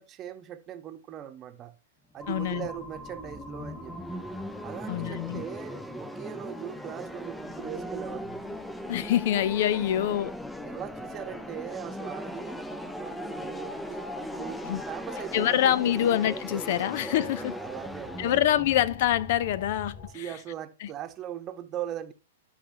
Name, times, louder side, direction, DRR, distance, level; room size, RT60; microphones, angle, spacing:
voice 1, 0.0-1.7 2.1-4.2 4.6-8.4 10.6-15.6 15.8-16.1 16.8-16.9 17.4-18.6 20.1-22.1, right 11 dB, 30° right, 1.0 m, -40 dB
sound 1, 2.2-20.1, left 3 dB, 25° left, 2.6 m, -46 dB
sound 2, 2.2-20.0, equal, 5° left, 0.5 m, -39 dB
voice 2, 2.3-2.7 4.9-5.4 8.9-10.3 14.7-14.8 15.3-17.5 18.2-20.3 20.8-20.9, left 11 dB, 55° left, 0.4 m, -25 dB
13.0 x 4.9 x 2.8 m
hypercardioid pair, 115°, 0 cm